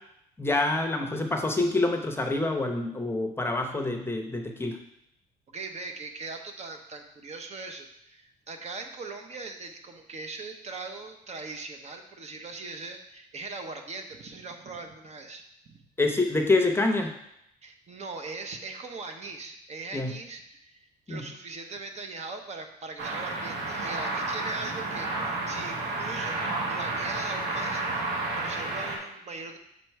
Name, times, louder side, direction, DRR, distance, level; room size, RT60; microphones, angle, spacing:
voice 1, 0.4-4.8 16.0-17.1 19.9-20.1 21.1-21.2, left 2 dB, 15° left, 3 dB, 0.7 m, -26 dB
voice 2, 5.5-15.9 17.6-26.4 26.7-29.6, right 3 dB, 40° right, 5 dB, 0.8 m, -40 dB
sound 1, 23.0-29.0, right 2 dB, 80° right, 1.6 m, -31 dB
6.3 x 4.5 x 4.5 m, 0.78 s
cardioid pair, 110°, 17 cm